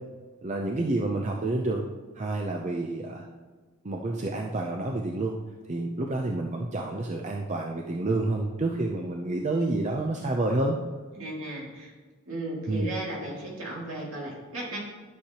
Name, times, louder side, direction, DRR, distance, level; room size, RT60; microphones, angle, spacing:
voice 1, 0.4-1.8 2.2-3.3 3.8-5.4 5.7-10.8 12.7-12.9, right 2 dB, 30° right, 1 dB, 0.5 m, -29 dB
voice 2, 11.2-11.9 12.3-14.8, right 1 dB, 65° right, -3 dB, 2.4 m, -35 dB
11.5 x 6.5 x 2.9 m, 1.3 s
head